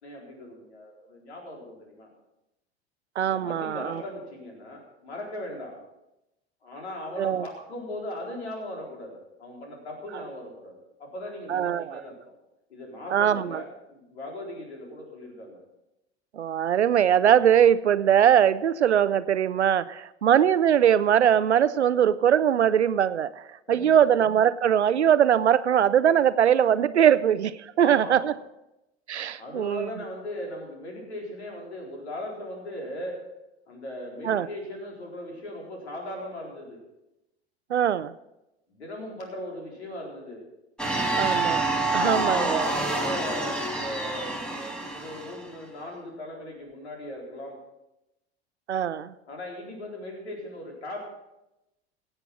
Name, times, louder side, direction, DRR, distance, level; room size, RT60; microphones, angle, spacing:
voice 1, 0.0-2.1 3.2-5.8 6.6-12.2 12.7-15.6 23.7-24.0 27.8-28.3 29.4-33.2 33.7-36.8 38.7-40.4 41.9-47.6 49.3-51.0, left 1 dB, 75° left, -1 dB, 4.2 m, -38 dB
voice 2, 3.2-4.0 7.2-7.5 11.5-12.0 13.1-13.6 16.4-23.3 23.7-28.3 29.1-29.9 34.2-34.5 37.7-38.1 41.2-42.7 48.7-49.1, right 9 dB, 85° right, 15 dB, 0.5 m, -21 dB
sound 1, 40.8-45.5, right 2 dB, ahead, 2.1 m, -27 dB
17.0 x 7.8 x 5.9 m, 0.92 s
figure-of-eight pair, 75°, 33 cm